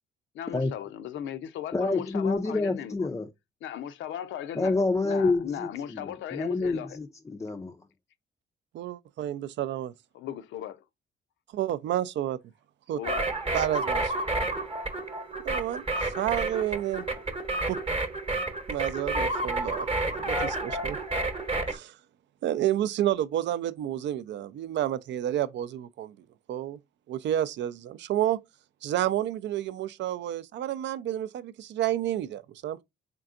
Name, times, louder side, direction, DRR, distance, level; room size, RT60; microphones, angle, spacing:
voice 1, 0.3-2.9 3.6-4.8 5.0-7.0 10.1-10.8 12.9-13.3, left 10 dB, 75° left, 0.5 m, -37 dB
voice 2, 1.7-3.3 4.6-7.8, left 3 dB, 15° left, 0.3 m, -28 dB
voice 3, 8.7-9.9 11.5-12.4 12.9-13.0 13.5-14.1 15.4-17.1 17.7-17.8 18.7-21.0 21.7-22.0 22.4-26.1 26.5-26.8 27.1-28.4 28.8-32.8, right 12 dB, 65° right, 0.4 m, -30 dB
sound 1, 13.0-21.8, right 2 dB, 30° right, 0.9 m, -30 dB
3.8 x 3.4 x 2.4 m
cardioid pair, 90°, 20 cm